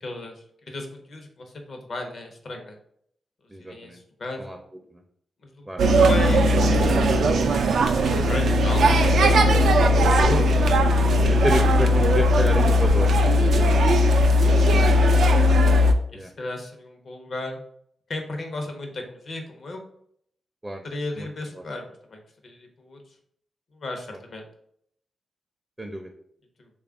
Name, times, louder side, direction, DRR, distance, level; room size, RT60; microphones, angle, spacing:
voice 1, 0.0-2.8 3.6-4.5 5.4-7.5 8.3-9.7 10.2-10.5 13.5-13.9 14.4-14.8 16.1-17.6 18.1-19.8 20.8-23.0 23.7-24.5 26.6-26.7, left 2 dB, 60° left, 3 dB, 0.7 m, -35 dB
voice 2, 3.5-4.0 4.4-4.6 4.9-5.0 5.7-5.8 11.2-13.8 16.1-16.3 20.6-20.8 21.2-21.3 21.5-21.6 24.1-24.2 25.8-26.1, right 1 dB, 15° right, 3 dB, 0.5 m, -30 dB
sound 1, 5.8-15.9, equal, 75° right, 0.3 m, -18 dB
3.3 x 2.4 x 3.6 m, 0.68 s
supercardioid pair, 50°, 0 cm